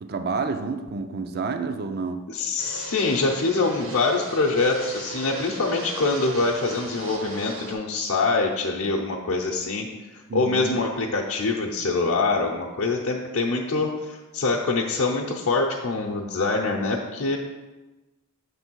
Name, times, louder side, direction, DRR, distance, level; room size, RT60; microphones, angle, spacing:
voice 1, 0.0-2.2 10.3-10.8, right 4 dB, 45° right, 7 dB, 0.5 m, -29 dB
voice 2, 2.3-17.4, left 3 dB, 70° left, -1 dB, 0.7 m, -25 dB
Fixed-wing aircraft airplane, 2.6-7.7, right 2 dB, 60° right, 1.2 m, -38 dB
7.2 x 3.3 x 6.1 m, 1.1 s
head